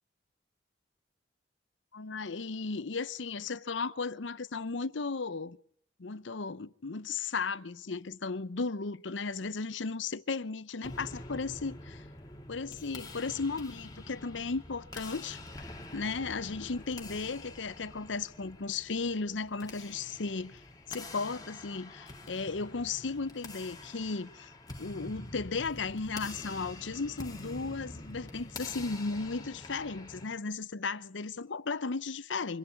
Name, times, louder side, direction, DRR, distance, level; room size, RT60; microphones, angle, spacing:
voice 1, 1.9-5.6 6.0-12.0 12.5-15.4 15.9-20.6 20.9-24.5 24.8-32.6, left 4 dB, 80° left, 0.8 m, -35 dB
sound 1, 10.8-30.3, left 2 dB, 20° left, 2.2 m, -46 dB
25.0 x 11.0 x 9.8 m
head